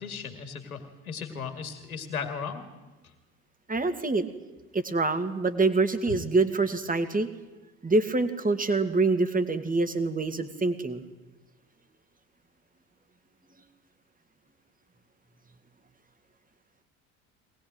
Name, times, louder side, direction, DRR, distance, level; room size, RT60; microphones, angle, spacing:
voice 1, 0.0-2.6 6.1-6.2, left 6 dB, 85° left, 7 dB, 2.4 m, -36 dB
voice 2, 3.7-4.3 4.7-7.3 7.8-11.0, right 3 dB, 20° right, 10 dB, 2.4 m, -25 dB
22.0 x 19.5 x 9.1 m, 1.1 s
figure-of-eight pair, 60°, 42 cm